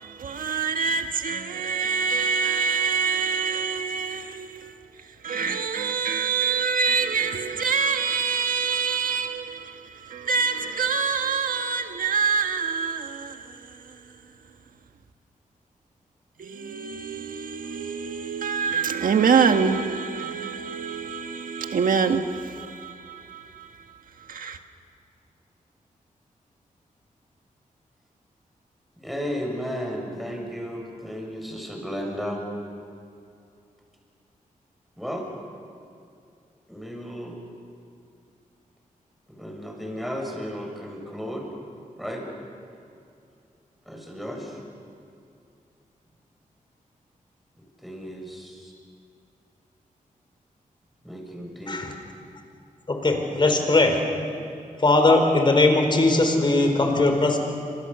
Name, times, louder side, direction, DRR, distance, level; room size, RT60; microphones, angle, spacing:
voice 1, 0.0-4.7 5.2-13.4 16.4-23.7 24.3-24.6, right 6 dB, 80° right, 1.6 m, -26 dB
voice 2, 29.0-32.4 35.0-35.2 36.7-37.4 39.3-41.5 42.0-42.2 43.9-44.6 47.6-48.7 51.0-51.8, equal, ahead, 6.6 m, -34 dB
voice 3, 52.9-54.0 54.8-57.4, left 2 dB, 35° left, 4.5 m, -19 dB
28.5 x 26.0 x 7.0 m
wide cardioid pair, 110°, 14 cm